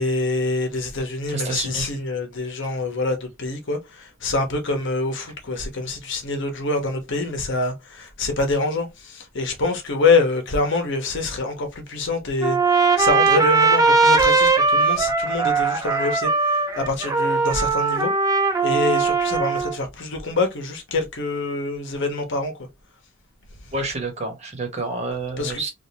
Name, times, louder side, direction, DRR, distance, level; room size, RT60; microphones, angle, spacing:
voice 1, 0.0-18.1 18.6-22.5 25.4-25.7, left 3 dB, 65° left, 1.0 m, -25 dB
voice 2, 1.3-2.1 23.7-25.7, right 3 dB, 35° right, 1.2 m, -29 dB
Trumpet, 12.4-19.7, right 4 dB, 15° right, 0.5 m, -19 dB
3.6 x 2.5 x 2.8 m
head